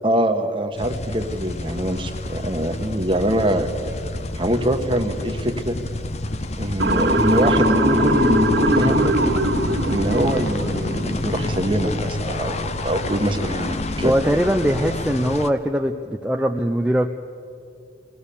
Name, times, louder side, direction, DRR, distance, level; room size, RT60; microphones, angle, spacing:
voice 1, 0.0-3.7 4.4-5.8 6.6-9.2 9.8-14.1, right 1 dB, 25° right, 5 dB, 1.3 m, -23 dB
sound 1, 0.8-15.5, left 2 dB, 35° left, 0.7 m, -28 dB
Motor vehicle (road) / Siren, 6.8-10.9, equal, 65° right, 2.1 m, -20 dB
voice 2, 14.0-17.1, equal, 5° right, 3 dB, 0.5 m, -21 dB
22.5 x 18.0 x 7.0 m, 2.4 s
head